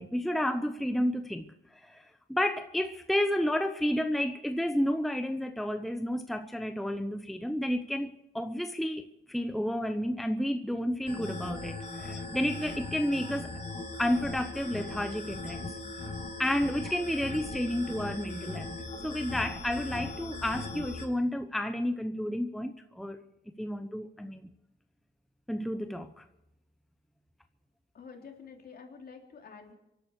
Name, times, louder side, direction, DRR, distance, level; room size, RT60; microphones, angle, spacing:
voice 1, 0.0-1.4 1.8-13.5 14.0-15.7 16.0-16.1 16.4-18.7 19.0-23.2 23.6-24.4 25.5-26.2, equal, ahead, 0.9 m, -31 dB
sound 1, 11.1-21.0, left 3 dB, 35° left, 5.5 m, -39 dB
voice 2, 27.9-29.7, left 5 dB, 50° left, 3.5 m, -48 dB
25.5 x 12.0 x 4.8 m
cardioid pair, 90°, 20 cm